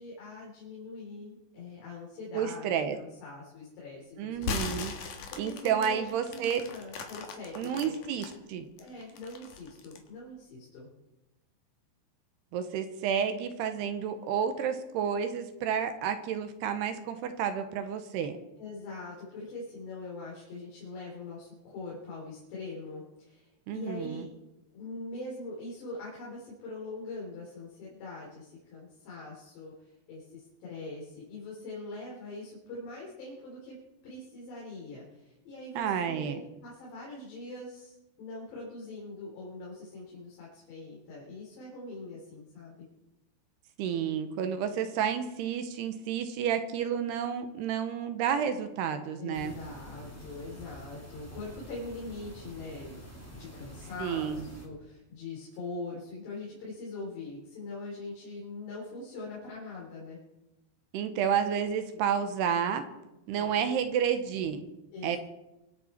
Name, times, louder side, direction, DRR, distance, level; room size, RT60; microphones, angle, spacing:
voice 1, 0.0-8.0 8.8-10.9 18.6-24.3 24.7-33.8 34.0-42.9 49.2-60.2 63.3-63.5 64.9-65.2, left 2 dB, 75° left, -4 dB, 5.9 m, -43 dB
voice 2, 2.3-3.0 4.2-4.9 5.4-6.6 7.6-8.7 12.5-18.4 23.7-24.2 35.7-36.4 43.8-49.5 54.0-54.4 60.9-62.8 63.3-64.6 65.0-65.2, right 8 dB, 75° right, 8 dB, 2.9 m, -30 dB
sound 1, 4.3-8.3 8.8-10.1, left 5 dB, 60° left, 2.7 m, -38 dB
sound 2, 49.3-54.7, right 1 dB, 5° left, 1.5 m, -47 dB
25.0 x 9.1 x 4.4 m, 0.96 s
omnidirectional pair, 5.0 m